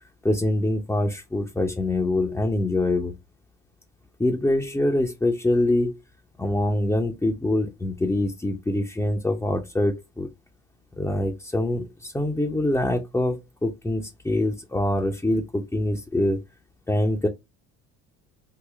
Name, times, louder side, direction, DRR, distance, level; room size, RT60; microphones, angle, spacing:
voice 1, 0.2-3.2 4.2-6.0 6.4-10.3 11.0-16.4 16.9-17.3, left 1 dB, 10° left, 0.7 m, -24 dB
3.9 x 2.1 x 3.2 m
supercardioid pair, 85°, 33 cm